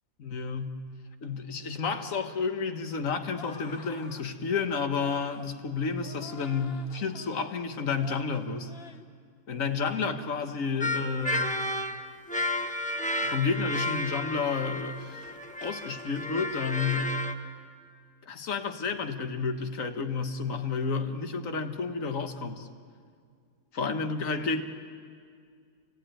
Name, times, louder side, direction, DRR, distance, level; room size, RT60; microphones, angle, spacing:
voice 1, 0.2-0.8 1.2-8.7 9.5-11.6 13.2-17.2 18.3-22.7 23.8-24.6, left 5 dB, 65° left, 7 dB, 1.7 m, -31 dB
sound 1, 3.3-4.3 5.0-5.5 6.0-7.6 7.9-8.3 8.6-9.1 9.5-9.8, left 5 dB, 45° left, 1.3 m, -48 dB
sound 2, 10.8-17.3, left 1 dB, 5° left, 1.0 m, -32 dB
27.0 x 20.0 x 9.2 m, 2.1 s
omnidirectional pair, 1.5 m